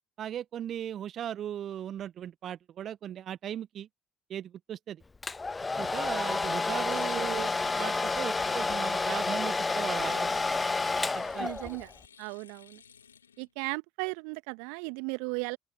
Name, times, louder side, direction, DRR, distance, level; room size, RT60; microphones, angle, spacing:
voice 1, 0.2-3.9 4.3-5.0 5.8-10.3 11.1-11.8, right 10 dB, 50° right, 1.1 m, -38 dB
Domestic sounds home sounds, 5.2-11.9, left 3 dB, 20° left, 0.4 m, -30 dB
sound 1, 6.9-13.5, left 7 dB, 80° left, 2.8 m, -55 dB
voice 2, 11.4-11.9 12.2-12.8 13.4-15.6, right 36 dB, 65° right, 1.6 m, -36 dB
open air
figure-of-eight pair, 55°, 0 cm